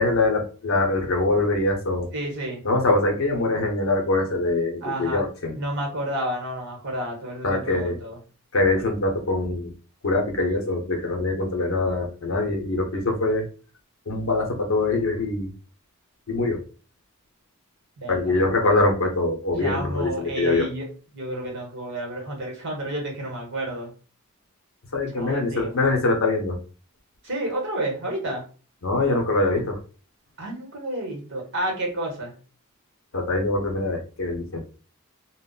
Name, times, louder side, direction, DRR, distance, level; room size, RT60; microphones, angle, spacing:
voice 1, 0.0-2.1 2.6-5.5 7.4-8.0 8.5-9.7 10.0-13.4 14.1-15.5 16.3-16.6 18.1-20.7 24.9-26.6 28.8-29.8 33.1-34.6, left 2 dB, 65° left, 2 dB, 0.7 m, -23 dB
voice 2, 2.1-2.6 4.8-5.2 5.5-8.2 18.0-18.4 19.6-23.9 25.2-25.7 27.2-28.4 30.4-32.3, right 1 dB, 55° right, 0 dB, 1.1 m, -30 dB
2.2 x 2.0 x 3.7 m, 0.37 s
head